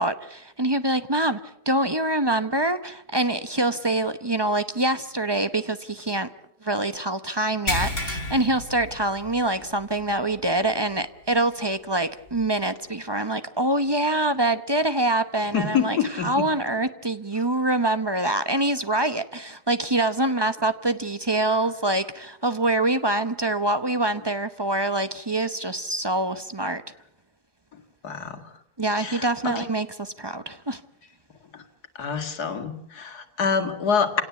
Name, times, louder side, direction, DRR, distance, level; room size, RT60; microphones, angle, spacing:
voice 1, 0.0-6.3 6.6-26.8 28.8-30.8, right 2 dB, 20° right, 11 dB, 0.7 m, -25 dB
sound 1, 7.7-9.6 9.9-10.1 10.6-10.7 12.3-12.4, left 1 dB, 50° left, 5.5 m, -30 dB
voice 2, 15.5-16.5 28.0-28.4 29.0-29.6 31.5-31.6 32.0-34.2, left 6 dB, 80° left, 7 dB, 2.4 m, -26 dB
27.0 x 17.5 x 8.3 m, 0.82 s
omnidirectional pair, 1.6 m